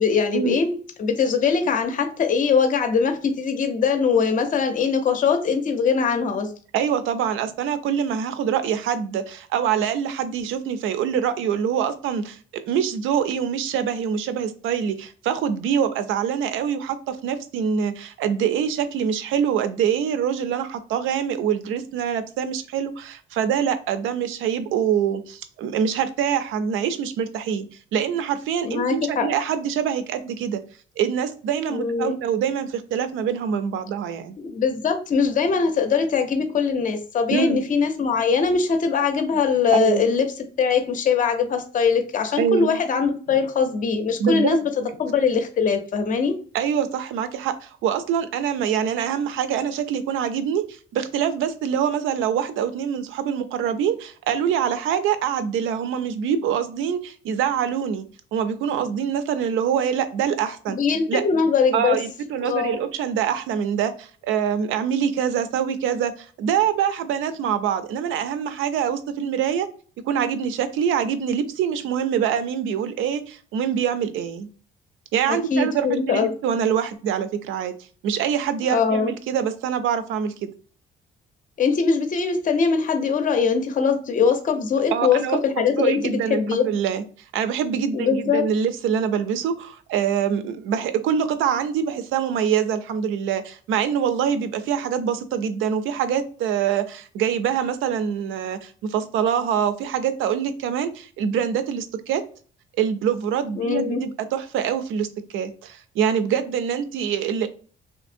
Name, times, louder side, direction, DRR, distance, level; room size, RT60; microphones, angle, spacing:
voice 1, 0.0-6.5 28.6-29.3 31.7-32.2 34.4-40.3 40.6-44.7 45.0-46.4 60.7-62.0 62.4-62.8 75.3-76.3 78.7-79.1 81.6-86.7 87.9-88.4 103.6-104.0, left 5 dB, 40° left, 6 dB, 0.5 m, -22 dB
voice 2, 6.7-27.7 27.9-30.6 31.0-34.4 37.3-37.6 39.7-40.1 42.4-42.8 44.2-44.9 46.5-58.1 58.3-60.8 61.1-61.2 61.7-69.7 70.1-74.5 75.1-77.7 78.0-80.5 84.9-87.0 87.3-102.2 102.8-105.1 105.3-107.5, right 8 dB, 85° right, 11 dB, 0.4 m, -24 dB
2.8 x 2.6 x 2.5 m, 0.41 s
cardioid pair, 90°, 20 cm